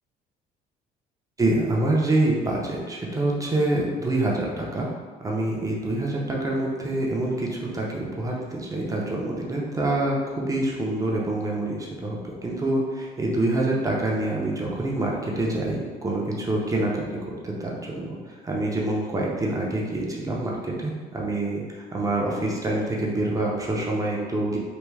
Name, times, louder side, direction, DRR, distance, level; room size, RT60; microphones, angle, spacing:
voice 1, 1.4-4.9 5.2-17.0 17.4-18.2 18.4-21.6 21.9-24.6, right 2 dB, 20° right, -3 dB, 0.6 m, -26 dB
3.4 x 2.3 x 3.2 m, 1.5 s
cardioid pair, 110°, 17 cm